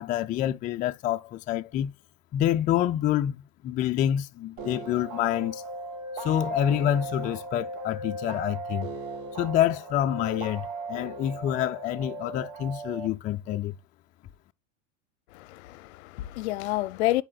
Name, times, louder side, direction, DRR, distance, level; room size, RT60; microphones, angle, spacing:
voice 1, 0.0-1.9 2.3-5.6 6.2-8.9 9.4-13.7, left 11 dB, 20° left, 0.4 m, -27 dB
sound 1, 4.6-13.1, right 2 dB, 70° right, 3.6 m, -37 dB
voice 2, 15.3-17.2, left 17 dB, 60° left, 0.6 m, -29 dB
10.5 x 4.8 x 2.3 m
hypercardioid pair, 105°, 38 cm